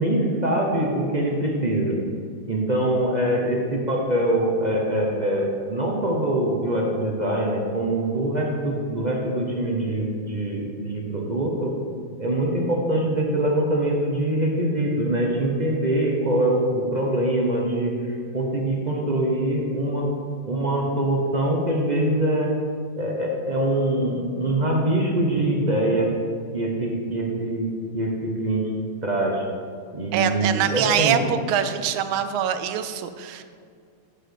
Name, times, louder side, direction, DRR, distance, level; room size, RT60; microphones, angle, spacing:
voice 1, 0.0-1.9 2.5-11.7 12.2-17.9 18.3-20.1 20.5-22.5 23.0-26.1 26.5-27.7 27.9-28.7 29.0-29.4 29.9-31.2, right 1 dB, 60° right, -1 dB, 0.4 m, -23 dB
voice 2, 30.1-33.4, right 9 dB, 80° right, 10 dB, 1.4 m, -24 dB
8.8 x 4.9 x 6.5 m, 2.2 s
omnidirectional pair, 2.3 m